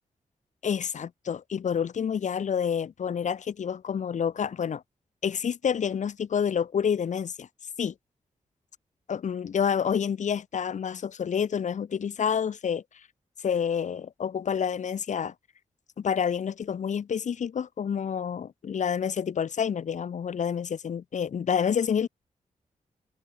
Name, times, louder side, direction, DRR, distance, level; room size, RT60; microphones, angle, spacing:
voice 1, 0.6-4.8 5.2-7.5 7.8-7.9 9.1-12.8 13.4-15.3 16.0-22.1, left 7 dB, 65° left, 1.7 m, -28 dB
wide cardioid pair, 120°, 13 cm